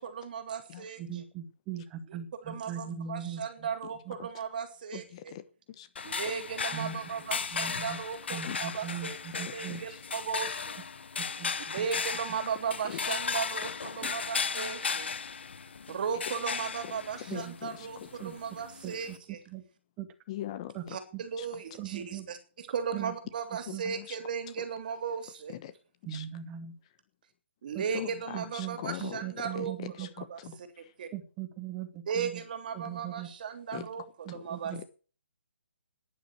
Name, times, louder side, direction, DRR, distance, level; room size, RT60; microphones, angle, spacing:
voice 1, 0.0-1.0 2.5-5.3 6.0-10.7 11.7-15.1 15.9-19.4 20.9-22.4 22.7-25.6 27.6-29.7 30.3-30.4 31.0-31.1 32.1-34.7, right 7 dB, 45° right, 8 dB, 3.3 m, -36 dB
voice 2, 1.0-3.7 4.1-4.2 6.7-7.0 7.5-8.0 8.3-9.9 11.2-11.9 17.3-17.6 18.2-18.3 18.8-19.2 19.5-19.6 20.0-20.1 20.7-20.9 21.1-21.2 21.8-22.3 22.9-23.2 23.7-23.9 26.0-26.8 27.7-27.8 28.3-30.6 31.1-32.4 32.7-33.3 33.7-33.9 34.3-34.8, right 9 dB, 20° right, 6 dB, 2.2 m, -40 dB
voice 3, 4.9-5.4 5.7-5.9 8.4-8.6 9.7-10.0 12.8-13.2 17.3-18.1 20.3-21.0 21.4-21.5 23.7-24.2 25.5-25.7 26.1-26.2 27.9-30.1 30.4-30.5 30.8-30.9 33.7-33.8 34.3-34.4 34.7-34.8, left 12 dB, 30° left, 13 dB, 1.1 m, -41 dB
sound 1, 6.0-19.2, left 5 dB, 65° left, 1.3 m, -36 dB
12.0 x 10.5 x 7.6 m, 0.38 s
hypercardioid pair, 155°, 6 cm